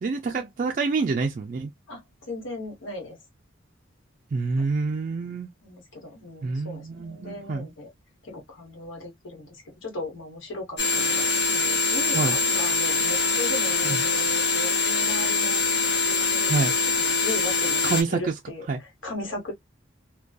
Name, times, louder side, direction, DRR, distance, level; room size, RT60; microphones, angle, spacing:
voice 1, 0.0-1.7 4.3-5.5 6.4-7.7 12.1-12.4 13.8-14.0 16.5-16.7 17.8-18.3 18.7-18.8, right 4 dB, 40° right, 0.3 m, -27 dB
voice 2, 1.9-3.2 4.5-4.6 5.6-7.9 8.2-15.6 16.0-19.5, left 1 dB, 75° left, 1.1 m, -37 dB
sound 1, 10.8-18.0, left 4 dB, 55° left, 0.6 m, -23 dB
2.5 x 2.2 x 2.2 m
head